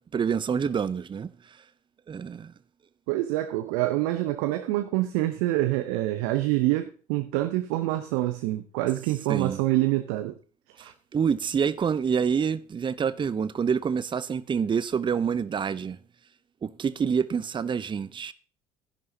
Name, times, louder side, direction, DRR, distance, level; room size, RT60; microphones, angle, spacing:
voice 1, 0.1-1.3 2.1-2.5 9.3-9.6 10.8-16.0 16.6-18.3, right 6 dB, 25° right, 0.6 m, -27 dB
voice 2, 3.1-10.4 10.8-10.9, right 16 dB, 65° right, 0.8 m, -26 dB
13.0 x 10.5 x 2.8 m
figure-of-eight pair, 55°, 19 cm